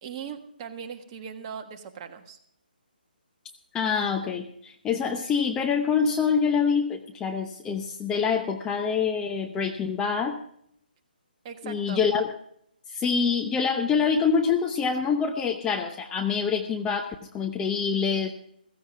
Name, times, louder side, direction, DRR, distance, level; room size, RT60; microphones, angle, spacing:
voice 1, 0.0-2.4 11.4-12.0, right 7 dB, 30° right, 5 dB, 1.5 m, -39 dB
voice 2, 3.7-10.4 11.6-12.3 12.9-18.3, left 6 dB, 10° left, 4 dB, 0.8 m, -26 dB
15.5 x 15.0 x 3.5 m, 0.67 s
figure-of-eight pair, 145°, 5 cm